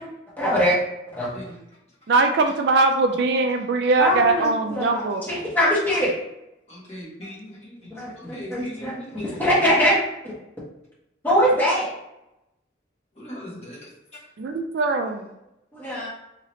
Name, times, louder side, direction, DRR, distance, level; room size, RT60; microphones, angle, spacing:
voice 1, 0.4-0.8 1.1-1.4 4.0-6.1 7.9-9.9 10.2-10.3 11.2-11.9 15.7-16.1, equal, 10° left, -8 dB, 1.0 m, -22 dB
voice 2, 2.1-5.2 14.4-15.3, right 3 dB, 55° right, 5 dB, 0.3 m, -21 dB
voice 3, 4.8-5.2 6.7-9.5 13.1-14.3, equal, 35° left, -7 dB, 1.2 m, -40 dB
2.8 x 2.8 x 3.1 m, 0.88 s
head